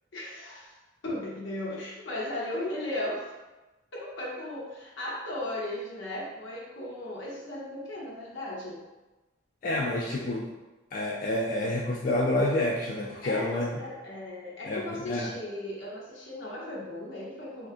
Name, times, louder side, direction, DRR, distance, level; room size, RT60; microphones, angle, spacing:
voice 1, 0.1-0.7 1.0-3.3 3.9-8.8 13.2-17.7, left 1 dB, 85° left, -5 dB, 0.9 m, -36 dB
voice 2, 9.6-10.4 10.9-13.7 14.7-15.3, left 1 dB, 45° left, -3 dB, 0.3 m, -28 dB
3.6 x 2.3 x 2.4 m, 1.1 s
head